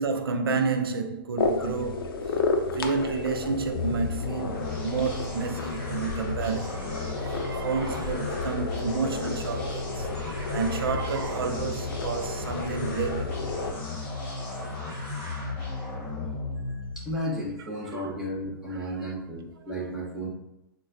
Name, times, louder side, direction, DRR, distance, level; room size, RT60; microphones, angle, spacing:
voice 1, 0.0-2.2 2.6-13.3 14.5-15.6 17.8-18.0 18.7-19.1, right 5 dB, 90° right, 0.4 m, -31 dB
sound 1, 1.4-13.7, left 3 dB, 80° left, 0.5 m, -33 dB
sound 2, 3.4-17.2, left 3 dB, 20° left, 1.3 m, -34 dB
voice 2, 17.0-20.3, equal, 5° right, 0.9 m, -33 dB
3.9 x 2.1 x 2.5 m
hypercardioid pair, 130°, 12 cm